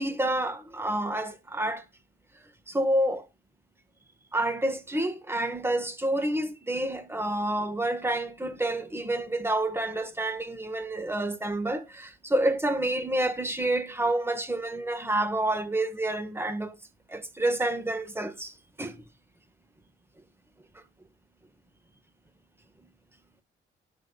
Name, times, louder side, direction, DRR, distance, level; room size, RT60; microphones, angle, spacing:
voice 1, 0.0-1.8 2.7-3.3 4.3-16.8 17.1-19.0, right 1 dB, 10° right, 2.0 m, -28 dB
19.0 x 6.4 x 2.6 m
cardioid pair, 90°, 20 cm